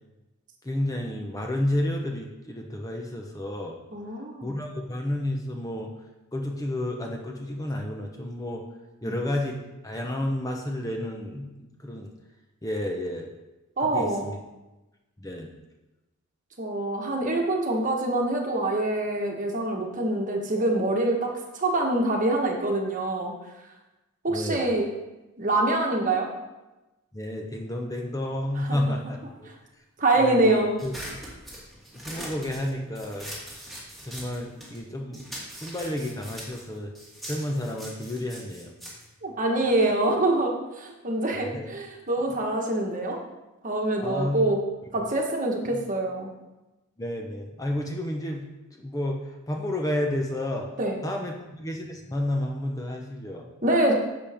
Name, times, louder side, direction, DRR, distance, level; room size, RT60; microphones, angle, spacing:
voice 1, 0.6-3.8 4.4-5.9 6.3-8.6 9.0-9.6 9.8-12.1 12.6-13.3 13.8-14.4 15.2-15.5 24.3-24.7 27.1-29.5 30.2-30.9 31.9-33.3 33.7-33.8 34.0-35.3 35.5-36.9 37.3-38.7 41.5-41.7 44.0-44.5 45.7-45.8 47.0-48.4 48.8-50.7 51.0-53.5, left 1 dB, 15° left, 1 dB, 0.8 m, -31 dB
voice 2, 3.9-4.6 9.0-9.1 13.8-14.2 16.6-23.3 24.2-24.9 25.4-26.3 28.6-28.9 30.0-30.8 39.2-43.2 43.6-44.6 44.9-46.3 50.8-51.0 53.6-53.9, right 2 dB, 35° right, 1 dB, 1.3 m, -25 dB
sound 1, 30.8-34.8 35.1-39.9, equal, ahead, 2.1 m, -42 dB
10.5 x 7.0 x 3.5 m, 1.0 s
head